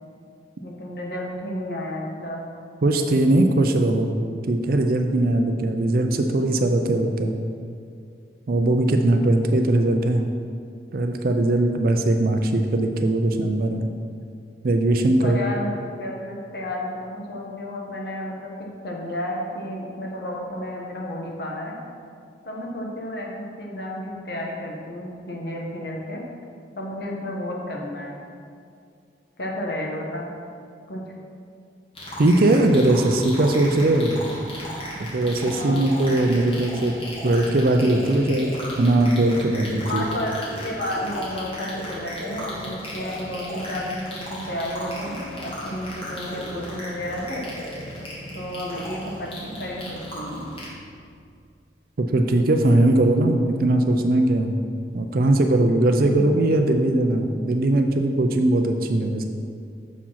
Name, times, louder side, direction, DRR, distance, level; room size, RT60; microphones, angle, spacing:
voice 1, 0.6-2.5 15.1-18.5 18.8-21.7 22.4-26.2 26.8-28.2 29.4-30.3 30.9-31.0 35.5-35.9 39.9-47.5 48.3-49.3 49.6-50.4 56.0-56.3, left 1 dB, 60° left, -1 dB, 1.2 m, -32 dB
voice 2, 2.8-4.1 4.5-7.4 8.5-10.2 10.9-13.8 14.6-15.4 32.2-34.2 35.0-36.9 37.2-38.5 38.8-40.1 52.0-54.5 54.9-59.3, right 1 dB, 55° right, 5 dB, 0.5 m, -20 dB
sound 1, 32.0-50.7, equal, 30° left, 1.9 m, -35 dB
7.0 x 4.9 x 5.7 m, 2.3 s
head